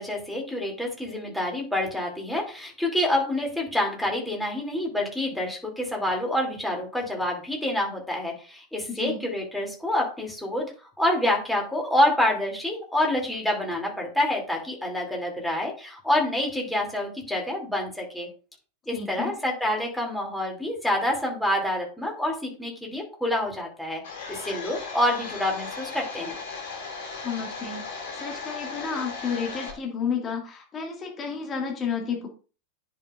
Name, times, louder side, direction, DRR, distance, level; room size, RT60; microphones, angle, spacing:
voice 1, 0.0-10.7 11.0-18.3 18.9-24.0 24.3-26.4, left 1 dB, 5° left, -1 dB, 2.8 m, -27 dB
voice 2, 8.9-9.2 18.9-19.3 27.2-32.3, left 6 dB, 25° left, 1 dB, 2.0 m, -31 dB
Domestic sounds home sounds, 24.0-29.7, left 4 dB, 55° left, 2.6 m, -37 dB
10.0 x 6.1 x 2.5 m, 0.36 s
figure-of-eight pair, 90°, 0 cm